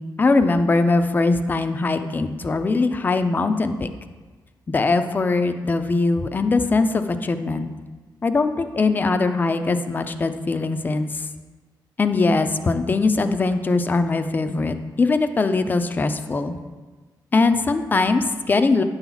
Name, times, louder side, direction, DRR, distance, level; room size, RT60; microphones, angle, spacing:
voice 1, 0.0-3.9 4.7-7.7 8.2-11.2 12.0-16.6 17.3-18.8, left 3 dB, 25° left, 8 dB, 0.5 m, -21 dB
9.8 x 4.0 x 7.0 m, 1.3 s
wide cardioid pair, 155°, 8 cm